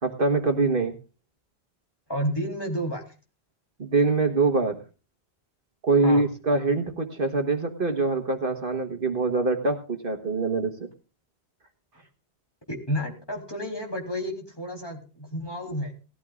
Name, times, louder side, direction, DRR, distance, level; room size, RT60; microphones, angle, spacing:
voice 1, 0.0-0.9 3.8-4.8 5.8-10.9, right 3 dB, 55° right, 5 dB, 1.5 m, -24 dB
voice 2, 2.1-3.1 6.0-6.3 12.7-16.0, equal, 20° left, 0 dB, 3.6 m, -31 dB
18.5 x 14.0 x 2.5 m, 0.34 s
omnidirectional pair, 1.1 m